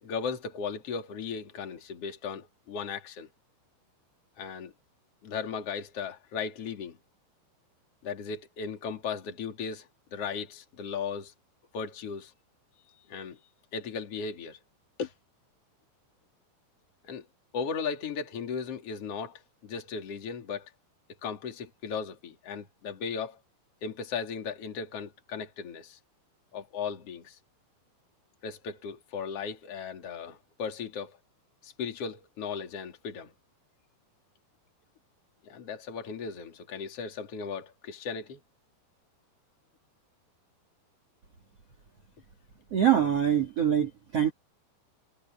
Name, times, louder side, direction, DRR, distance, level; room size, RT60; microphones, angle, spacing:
voice 1, 0.0-3.3 4.4-4.7 5.2-7.0 8.0-11.3 11.7-12.3 13.1-13.4 13.7-14.6 15.0-15.1 17.0-17.3 17.5-20.7 21.2-23.4 23.8-26.0 26.5-27.4 28.4-31.2 31.6-33.3 35.4-38.4, left 6 dB, 35° left, 3.1 m, -36 dB
voice 2, 42.7-44.3, right 10 dB, 40° right, 2.9 m, -24 dB
omnidirectional pair, 5.5 m